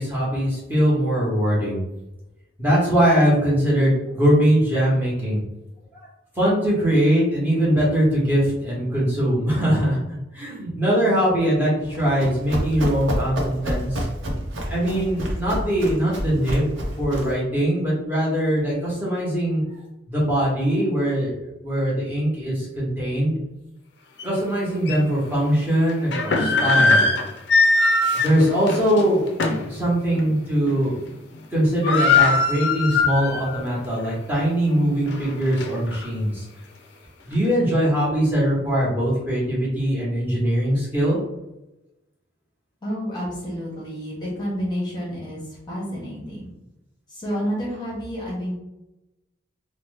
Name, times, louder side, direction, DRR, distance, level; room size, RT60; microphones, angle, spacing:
voice 1, 0.0-1.8 2.6-5.4 5.9-6.1 6.4-10.0 10.3-14.1 14.7-19.6 20.1-23.4 24.2-27.0 28.1-29.3 29.6-31.0 31.5-36.4 37.2-41.2, equal, 10° right, -7 dB, 1.0 m, -21 dB
Run, 11.8-17.4, equal, 85° right, 0.7 m, -29 dB
sound 1, 24.2-24.3 24.9-25.0 25.9-29.7 30.1-30.3 30.7-31.1 31.3-31.4 31.6-33.6 34.0-34.1 34.7-36.0, left 3 dB, 60° left, 0.4 m, -21 dB
voice 2, 42.8-46.5 47.1-48.5, equal, 20° left, -5 dB, 0.8 m, -29 dB
2.8 x 2.0 x 3.3 m, 0.95 s
head